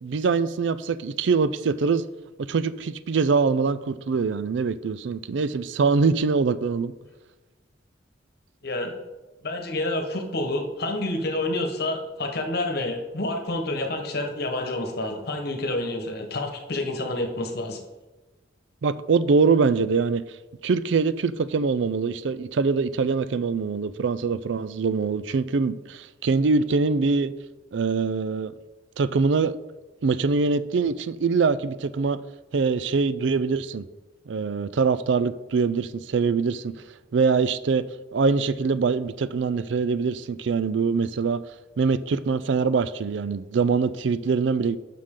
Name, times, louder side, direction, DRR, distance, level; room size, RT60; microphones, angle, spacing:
voice 1, 0.0-2.0 2.4-6.9 18.8-20.2 20.6-27.3 27.7-28.5 29.0-29.5 30.0-32.2 32.5-33.8 34.3-36.8 37.1-37.8 38.1-41.4 41.8-44.8, right 4 dB, 70° right, 15 dB, 0.4 m, -23 dB
voice 2, 8.6-9.0 9.4-17.8, left 2 dB, 55° left, 4 dB, 1.2 m, -28 dB
11.5 x 5.9 x 3.8 m, 1.1 s
head